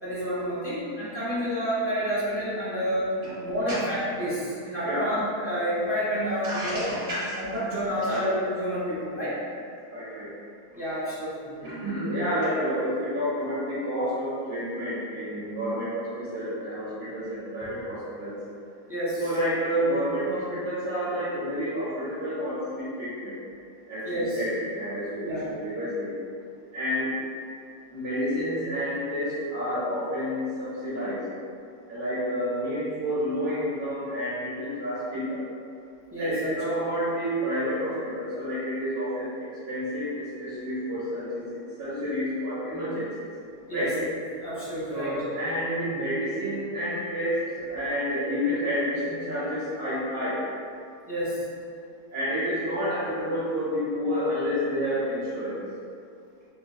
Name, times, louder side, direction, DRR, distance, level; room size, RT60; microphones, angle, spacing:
voice 1, 0.0-3.1 3.4-6.9 7.4-9.3 10.7-11.6 18.9-19.3 24.0-24.4 25.2-25.5 36.1-36.5 43.7-44.1 44.4-45.2 51.1-51.4, equal, 20° right, -11 dB, 0.3 m, -29 dB
voice 2, 6.5-7.4 8.1-8.2 9.9-10.3 11.6-18.4 19.2-23.4 23.9-26.1 26.7-27.1 27.9-31.2 31.9-35.4 36.2-43.1 43.7-43.9 44.9-50.4 52.1-55.6, equal, 80° right, -17 dB, 1.7 m, -29 dB
4.4 x 2.1 x 2.7 m, 2.3 s
omnidirectional pair, 1.6 m